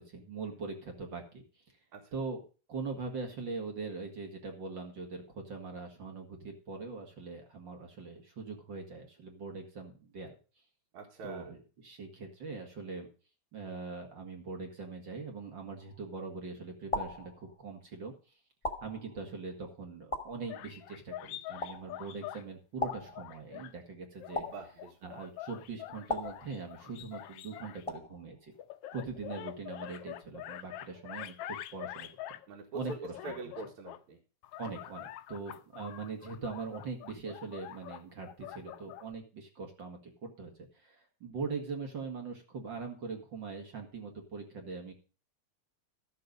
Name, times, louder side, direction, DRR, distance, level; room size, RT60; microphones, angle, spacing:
voice 1, 0.0-1.4 2.1-2.4 2.7-10.4 11.2-13.1 13.5-18.1 18.8-24.4 25.0-28.5 28.9-32.4 32.7-33.1 34.6-44.9, right 4 dB, 45° right, 3 dB, 2.0 m, -42 dB
voice 2, 10.9-11.5 24.4-25.2 32.5-34.2, right 3 dB, 75° right, -1 dB, 2.9 m, -44 dB
sound 1, 15.8-16.3 16.9-17.9 18.6-19.5 20.1-21.0 21.6-22.3 22.8-23.7 24.3-25.2 26.1-27.1 27.9-28.5, left 2 dB, 30° left, 0.6 m, -39 dB
sound 2, 20.5-22.4 22.8-23.7 24.2-27.8 28.6-32.5 32.8-34.0 34.4-39.1, left 13 dB, 90° left, 1.3 m, -45 dB
13.5 x 6.8 x 5.2 m, 0.36 s
omnidirectional pair, 3.4 m